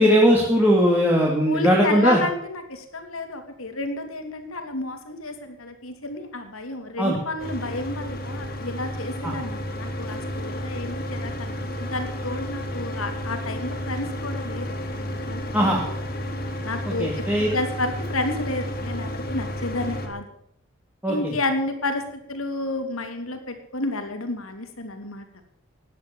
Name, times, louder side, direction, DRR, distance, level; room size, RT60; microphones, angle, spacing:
voice 1, 0.0-2.2 7.0-7.2 9.2-9.3 15.5-15.8 16.9-17.5 21.0-21.3, equal, 10° right, -3 dB, 2.7 m, -19 dB
voice 2, 1.5-14.7 14.9-16.0 16.6-17.1 17.5-20.2 21.1-25.2, left 2 dB, 85° left, 6 dB, 3.0 m, -31 dB
Mechanical fan, 7.4-20.1, equal, 45° left, 2.9 m, -31 dB
17.0 x 10.5 x 7.1 m, 0.74 s
head